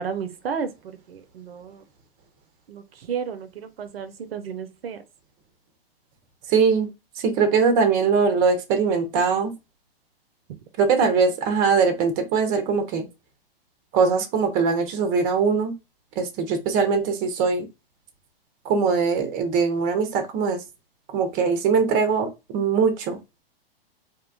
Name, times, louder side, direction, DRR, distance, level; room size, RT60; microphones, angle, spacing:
voice 1, 0.0-1.8 2.7-5.0, right 6 dB, 75° right, 0.5 m, -33 dB
voice 2, 6.5-6.9 7.2-9.5 10.8-13.0 13.9-15.7 16.2-17.7 18.6-20.6 21.1-23.2, right 5 dB, 30° right, 0.6 m, -21 dB
2.7 x 2.2 x 2.4 m
hypercardioid pair, 115°, 30 cm